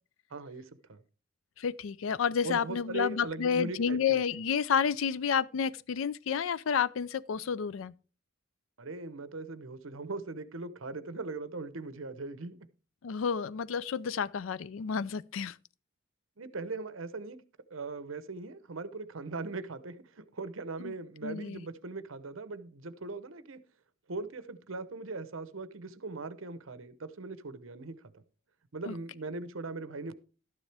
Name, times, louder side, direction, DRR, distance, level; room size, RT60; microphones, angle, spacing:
voice 1, 0.3-1.0 2.4-4.2 8.8-12.6 16.4-17.4 17.7-23.6 24.1-28.2 28.7-30.1, right 3 dB, 70° right, 0.8 m, -40 dB
voice 2, 1.6-7.9 13.0-15.6 20.8-20.9 21.2-21.6 28.9-29.0, left 7 dB, 65° left, 0.4 m, -30 dB
12.0 x 9.8 x 3.4 m
head